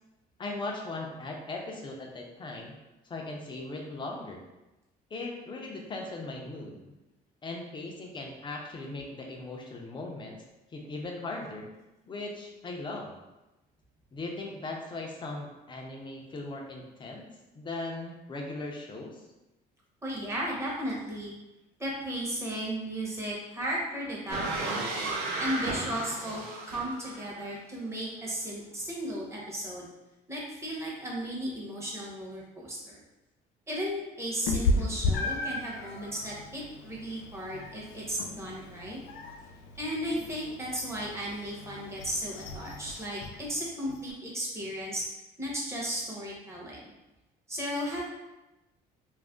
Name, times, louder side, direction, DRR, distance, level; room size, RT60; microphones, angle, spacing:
voice 1, 0.4-2.8 3.0-4.4 5.1-6.9 7.4-10.4 10.7-11.7 12.1-13.1 14.1-19.2, left 2 dB, 30° left, 0 dB, 0.5 m, -38 dB
voice 2, 20.0-21.3 21.8-24.8 25.4-29.9 30.3-33.0 33.7-39.0 39.8-45.0 45.4-46.9 47.5-48.0, equal, 15° right, -4 dB, 0.9 m, -35 dB
sound 1, 24.3-27.4, right 2 dB, 60° right, 0.6 m, -34 dB
Meow, 34.5-44.1, left 2 dB, 80° left, 0.4 m, -35 dB
2.5 x 2.0 x 3.5 m, 1.0 s
cardioid pair, 110°, 17 cm